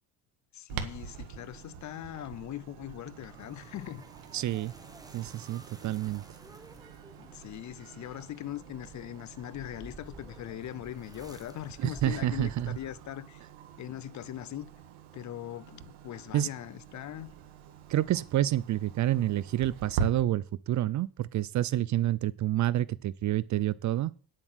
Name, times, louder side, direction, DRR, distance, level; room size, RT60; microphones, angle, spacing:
voice 1, 0.5-4.0 7.2-13.4 13.8-14.7 15.1-17.3, left 12 dB, 40° left, 0.5 m, -41 dB
Clock, 0.7-20.1, right 6 dB, 90° right, 1.7 m, -44 dB
sound 1, 2.9-13.3, right 2 dB, 10° right, 1.2 m, -52 dB
voice 2, 4.3-4.7 5.1-6.2 11.8-12.8 16.3-16.5 17.9-24.1, right 13 dB, 40° right, 0.4 m, -28 dB
9.9 x 7.4 x 6.2 m
cardioid pair, 135°, 45 cm